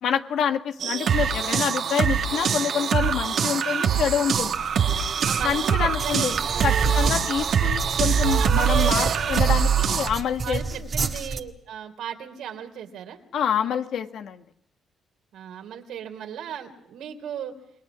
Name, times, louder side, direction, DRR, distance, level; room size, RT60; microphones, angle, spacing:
voice 1, 0.0-4.6 5.4-6.3 6.6-10.6 13.3-14.4, left 8 dB, 70° left, 6 dB, 1.7 m, -27 dB
sound 1, 0.8-10.1, right 7 dB, 65° right, 1.8 m, -23 dB
sound 2, 4.3-11.4, right 4 dB, 40° right, 2.0 m, -32 dB
voice 2, 5.2-6.9 8.4-9.2 10.4-13.2 15.3-17.5, right 9 dB, 80° right, 5 dB, 3.4 m, -36 dB
28.5 x 21.0 x 6.3 m, 0.72 s
cardioid pair, 90°, 0 cm